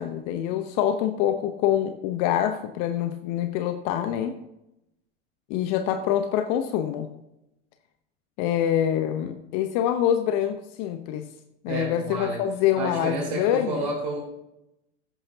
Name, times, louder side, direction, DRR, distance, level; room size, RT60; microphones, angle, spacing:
voice 1, 0.0-4.3 5.5-7.1 8.4-11.3 11.6-13.9, left 10 dB, 55° left, 8 dB, 0.9 m, -25 dB
voice 2, 11.7-12.4 12.8-14.2, right 3 dB, 50° right, -3 dB, 4.4 m, -31 dB
13.5 x 10.0 x 2.8 m, 0.87 s
hypercardioid pair, 90°, 36 cm